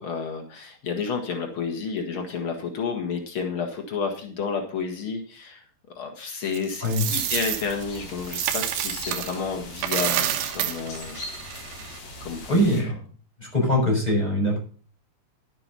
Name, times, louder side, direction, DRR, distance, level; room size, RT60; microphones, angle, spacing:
voice 1, 0.0-5.6 5.9-11.2 11.5-11.7 12.2-12.9, left 5 dB, 85° left, 3 dB, 1.1 m, -31 dB
Coin (dropping), 6.5-9.4 9.7-12.0, right 11 dB, 80° right, 3.7 m, -28 dB
sound 1, 7.0-12.8, left 2 dB, 50° left, 6.0 m, -40 dB
voice 2, 12.5-13.0 13.4-14.6, equal, 10° left, -1 dB, 5.9 m, -22 dB
11.5 x 11.0 x 4.1 m, 0.42 s
omnidirectional pair, 5.5 m